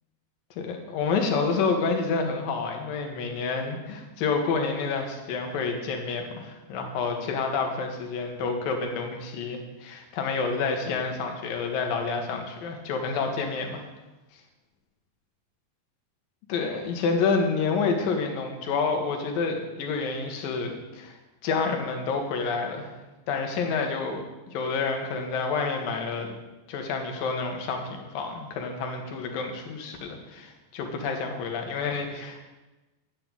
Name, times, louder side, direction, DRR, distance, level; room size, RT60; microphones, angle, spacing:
voice 1, 0.6-13.9 16.5-21.2 21.4-22.9 23.3-26.3 26.7-32.5, left 4 dB, 60° left, 3 dB, 2.9 m, -29 dB
8.8 x 8.4 x 9.0 m, 1.1 s
omnidirectional pair, 5.0 m